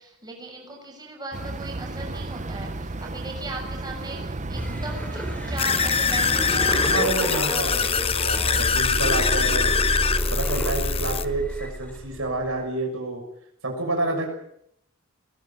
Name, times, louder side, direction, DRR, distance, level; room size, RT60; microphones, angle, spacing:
voice 1, 0.0-6.8 7.1-7.7, right 2 dB, 20° right, 0 dB, 6.8 m, -38 dB
sound 1, 1.3-7.1, right 2 dB, 35° right, 0.9 m, -33 dB
sound 2, 4.6-12.6, equal, 5° left, 3.7 m, -29 dB
sound 3, 5.6-11.2, left 6 dB, 25° left, 1.0 m, -24 dB
voice 2, 6.8-9.7 10.3-13.2 13.6-14.3, right 2 dB, 70° right, 3 dB, 6.6 m, -28 dB
20.0 x 19.0 x 9.2 m, 0.73 s
head